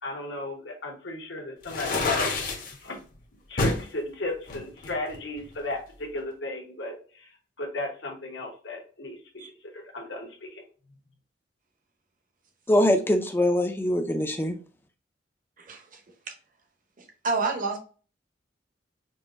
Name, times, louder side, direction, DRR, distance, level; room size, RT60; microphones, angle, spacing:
voice 1, 0.0-3.0 3.5-9.2 9.4-10.7, left 2 dB, 70° left, 1.1 m, -35 dB
sound 1, 1.6-2.7 3.6-3.9 4.5-5.6, left 3 dB, 45° left, 0.8 m, -28 dB
voice 2, 12.7-14.6, left 1 dB, 10° left, 0.5 m, -23 dB
voice 3, 15.6-16.0 16.3-16.4 17.0-17.8, right 4 dB, 45° right, 0.8 m, -29 dB
5.4 x 2.6 x 2.5 m
head